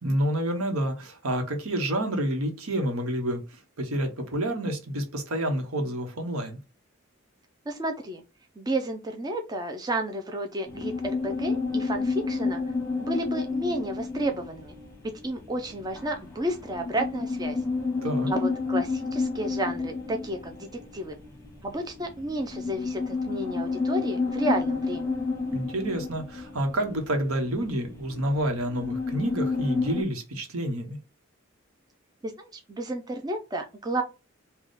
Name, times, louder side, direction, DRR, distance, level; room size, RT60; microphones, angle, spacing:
voice 1, 0.0-3.4 3.8-6.6 18.0-18.3 25.5-31.0, right 1 dB, 80° right, 1.0 m, -28 dB
voice 2, 7.7-8.2 8.6-12.6 13.0-14.7 15.2-17.6 18.3-21.2 21.6-25.1 32.2-34.0, right 1 dB, 20° right, 0.4 m, -31 dB
sound 1, 10.7-30.0, left 4 dB, 15° left, 1.0 m, -31 dB
3.6 x 2.3 x 3.9 m
head